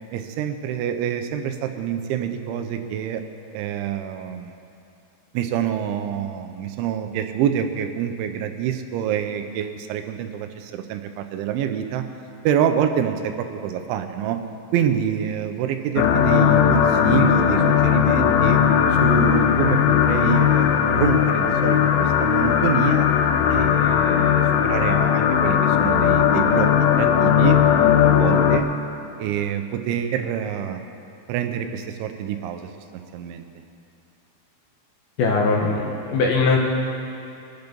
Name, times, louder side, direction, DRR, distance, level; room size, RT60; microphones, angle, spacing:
voice 1, 0.1-3.2 3.5-4.5 5.3-12.0 12.4-14.4 14.7-18.6 18.9-20.7 20.9-23.1 23.5-26.7 27.0-28.6 29.2-30.8 31.3-33.4, right 9 dB, 85° right, 7 dB, 3.2 m, -26 dB
sound 1, 16.0-28.6, left 8 dB, 85° left, 3.2 m, -18 dB
voice 2, 35.2-36.6, left 4 dB, 65° left, -1 dB, 2.8 m, -20 dB
23.5 x 8.1 x 5.3 m, 2.8 s
omnidirectional pair, 5.3 m